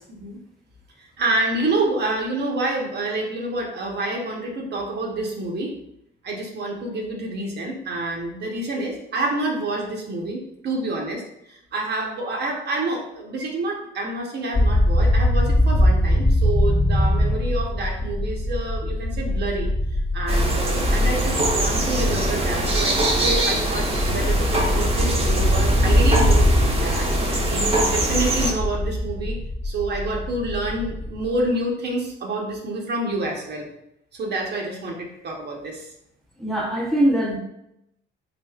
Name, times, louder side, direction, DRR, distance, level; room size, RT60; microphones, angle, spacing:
voice 1, 0.1-0.4 1.0-5.7 6.2-11.2 11.5-19.7 20.1-26.5 26.8-29.4 29.6-33.7 34.1-35.9, right 2 dB, 60° right, 0 dB, 0.9 m, -28 dB
sound 1, 14.5-31.4, left 1 dB, 30° left, 1.0 m, -22 dB
sound 2, 20.3-28.5, right 1 dB, 30° right, 0.8 m, -23 dB
voice 2, 36.4-37.4, right 1 dB, ahead, -3 dB, 0.8 m, -21 dB
3.6 x 3.4 x 2.3 m, 0.80 s
cardioid pair, 90°, 20 cm